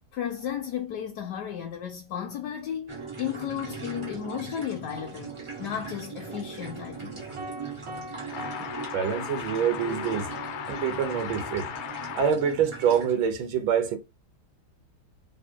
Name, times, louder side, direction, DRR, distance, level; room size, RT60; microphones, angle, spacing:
voice 1, 0.1-5.3 5.6-7.2, left 9 dB, 70° left, 1.1 m, -34 dB
sound 1, 2.9-13.3, right 4 dB, 25° right, 0.6 m, -40 dB
sound 2, 7.4-9.8, equal, 65° right, 0.6 m, -42 dB
sound 3, 8.3-12.3, left 9 dB, 85° left, 1.4 m, -37 dB
voice 2, 8.9-10.3 10.7-11.7 12.2-14.0, right 7 dB, 80° right, 1.6 m, -26 dB
3.5 x 3.3 x 4.3 m
omnidirectional pair, 2.2 m